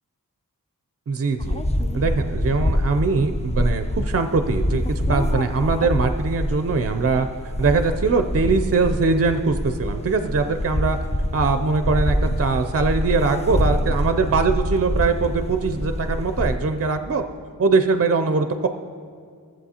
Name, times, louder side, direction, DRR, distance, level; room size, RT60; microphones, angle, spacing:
voice 1, 1.1-1.6 1.9-7.3 7.6-11.0 11.3-17.2 17.6-18.7, right 4 dB, 40° right, 7 dB, 0.4 m, -22 dB
sound 1, 1.4-16.6, left 1 dB, 20° left, 0.5 m, -25 dB
14.0 x 7.5 x 2.8 m, 2.2 s
wide cardioid pair, 40°, 36 cm